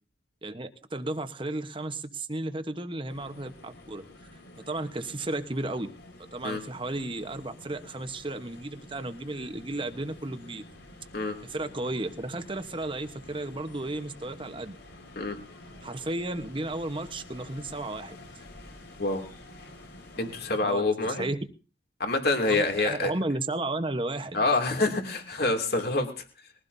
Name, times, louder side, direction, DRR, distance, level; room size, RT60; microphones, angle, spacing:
voice 1, 0.4-4.0 4.7-5.9 6.2-10.6 11.4-14.8 15.8-18.2 20.6-21.4 22.5-24.4, right 2 dB, 25° right, 9 dB, 1.1 m, -34 dB
sound 1, 3.1-20.6, left 1 dB, 75° left, 4.7 m, -49 dB
voice 2, 20.2-21.2 22.0-23.1 24.3-26.2, left 2 dB, 55° left, 4 dB, 2.6 m, -26 dB
21.5 x 16.0 x 2.7 m, 0.34 s
head